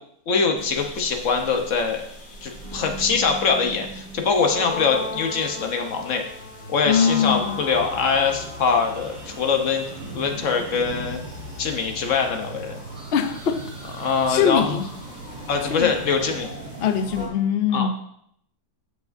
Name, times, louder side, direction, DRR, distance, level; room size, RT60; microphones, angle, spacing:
voice 1, 0.3-2.0 2.4-6.2 6.7-9.8 10.1-11.2 11.6-12.7 14.0-14.8 15.5-16.5 17.7-17.9, left 5 dB, 55° left, 4 dB, 1.2 m, -23 dB
sound 1, 0.6-17.3, left 1 dB, 30° left, 2.1 m, -39 dB
voice 2, 6.9-7.6 13.1-13.6 14.0-14.9 15.7-15.9 16.8-17.9, left 7 dB, 75° left, 8 dB, 0.5 m, -22 dB
sound 2, 7.0-17.4, right 3 dB, 70° right, 1.8 m, -39 dB
14.0 x 4.8 x 2.6 m, 0.70 s
omnidirectional pair, 1.8 m